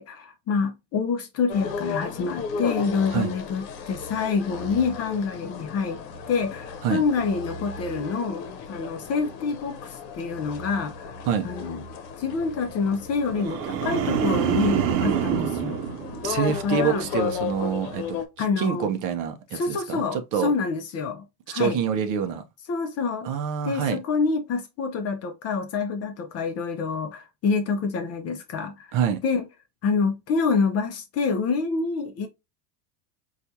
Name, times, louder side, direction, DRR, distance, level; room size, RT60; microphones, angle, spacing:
voice 1, 0.0-6.0 6.3-8.4 8.7-11.2 11.4-11.8 12.2-15.8 16.5-17.1 18.4-18.9 19.5-21.8 22.7-23.3 23.6-29.0 29.2-29.5 29.8-32.3, left 5 dB, 30° left, 0.5 m, -27 dB
sound 1, 1.5-18.3, left 5 dB, 75° left, 0.9 m, -35 dB
sound 2, 13.3-16.8 17.2-17.6, right 8 dB, 80° right, 0.7 m, -26 dB
voice 2, 16.2-18.2 18.6-20.5 21.5-22.4 23.2-24.0 28.9-29.2, right 7 dB, 40° right, 0.5 m, -26 dB
4.3 x 2.4 x 2.6 m
supercardioid pair, 110°, 50 cm